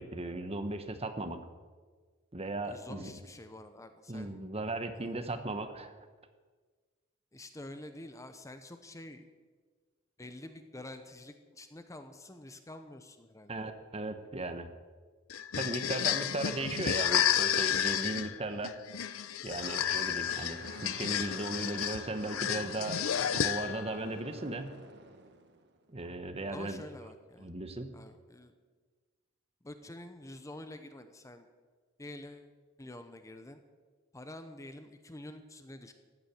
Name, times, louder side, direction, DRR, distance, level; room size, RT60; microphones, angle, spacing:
voice 1, 0.0-1.4 2.3-3.1 4.1-5.9 13.5-14.7 15.6-18.7 19.4-24.7 25.9-26.8 27.4-27.9, right 2 dB, 30° right, 8 dB, 1.2 m, -37 dB
voice 2, 2.6-4.5 5.0-5.1 7.3-9.3 10.2-13.5 26.5-27.5 27.9-28.5 29.6-31.5 32.0-32.5 32.8-33.6 34.1-35.9, left 1 dB, 15° left, 8 dB, 0.8 m, -48 dB
sound 1, 15.3-23.9, left 9 dB, 80° left, 0.7 m, -31 dB
sound 2, 19.6-25.9, right 3 dB, 55° right, 1.6 m, -50 dB
15.5 x 8.7 x 9.4 m, 1.4 s
head